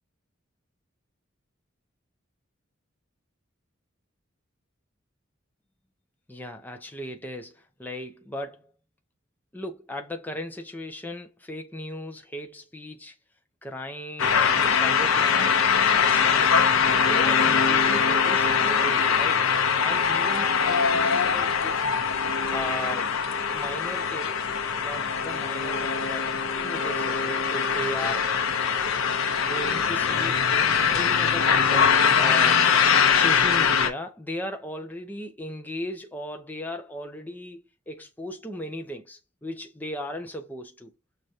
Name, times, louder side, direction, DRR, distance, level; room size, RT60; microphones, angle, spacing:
voice 1, 6.3-8.7 9.5-13.2 13.6-16.7 17.0-21.9 22.5-23.1 23.5-24.4 24.7-26.3 26.6-28.3 29.4-30.5 30.9-32.8 33.1-40.9, left 1 dB, 10° left, 0.5 m, -37 dB
sound 1, 14.2-33.9, left 6 dB, 80° left, 0.6 m, -22 dB
6.3 x 2.2 x 2.7 m
head